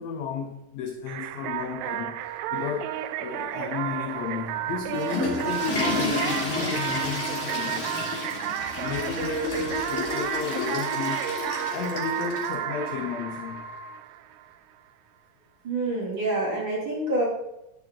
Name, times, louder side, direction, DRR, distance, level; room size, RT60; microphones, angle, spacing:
voice 1, 0.0-2.2 2.5-8.2 8.7-11.2 11.7-13.7, left 7 dB, 80° left, 1.6 m, -33 dB
sound 1, 1.1-14.5, right 12 dB, 90° right, 2.3 m, -32 dB
Water / Toilet flush, 4.7-12.5, left 2 dB, 20° left, 2.6 m, -31 dB
Wind instrument woodwind instrument, 9.5-14.0, left 3 dB, 60° left, 2.6 m, -41 dB
voice 2, 15.6-17.3, right 2 dB, 40° right, 3.1 m, -27 dB
10.5 x 8.6 x 3.7 m
omnidirectional pair, 3.8 m